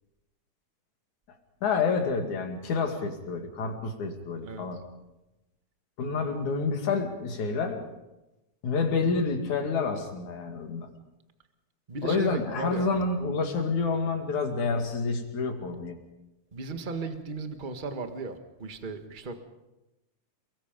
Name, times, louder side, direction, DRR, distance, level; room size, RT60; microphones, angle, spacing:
voice 1, 1.6-4.8 6.0-7.8 8.6-10.9 12.0-16.0, left 4 dB, 70° left, 4 dB, 3.8 m, -28 dB
voice 2, 11.9-12.9 16.5-19.4, right 3 dB, 30° right, 7 dB, 0.9 m, -36 dB
29.0 x 21.5 x 5.2 m, 0.97 s
omnidirectional pair, 3.5 m